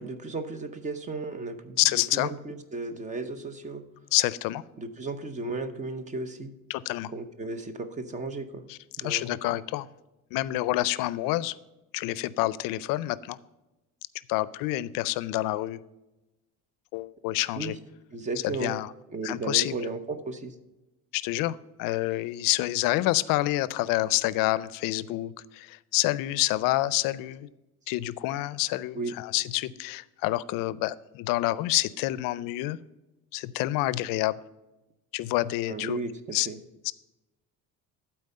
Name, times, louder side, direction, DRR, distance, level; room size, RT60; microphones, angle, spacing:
voice 1, 0.0-1.8 2.1-3.9 4.8-6.5 7.1-8.6 9.0-9.2 17.6-17.8 18.1-18.8 19.1-20.5 29.0-29.1 35.7-36.6, right 3 dB, 20° right, 10 dB, 0.6 m, -34 dB
voice 2, 1.8-2.3 4.1-4.6 6.7-7.1 8.7-8.8 9.0-9.9 10.3-11.5 11.9-13.4 14.3-15.8 16.9-17.7 18.4-18.9 19.2-19.7 21.1-27.5 27.9-32.8 33.3-34.4 35.1-36.0 36.3-36.5 36.8-36.9, left 17 dB, 75° left, 19 dB, 0.5 m, -28 dB
12.0 x 4.4 x 5.4 m, 1.0 s
cardioid pair, 160°, 33 cm